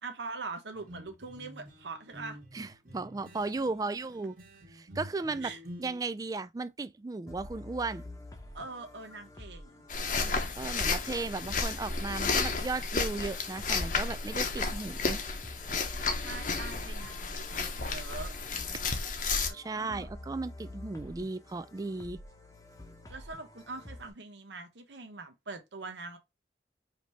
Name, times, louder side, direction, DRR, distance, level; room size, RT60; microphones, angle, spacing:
voice 1, 0.0-2.4 5.4-5.6 8.5-9.9 10.1-10.9 16.2-18.3 19.5-20.1 23.1-26.2, right 3 dB, 85° right, 0.9 m, -43 dB
sound 1, 0.7-6.0, equal, 50° right, 1.8 m, -49 dB
voice 2, 2.5-4.4 4.7-5.5 5.8-8.0 10.6-15.2 19.5-22.2, right 3 dB, 20° right, 0.3 m, -35 dB
sound 2, 7.3-24.1, left 1 dB, 20° left, 0.8 m, -48 dB
sound 3, 9.9-19.5, left 4 dB, 50° left, 0.8 m, -32 dB
5.1 x 2.8 x 3.1 m
head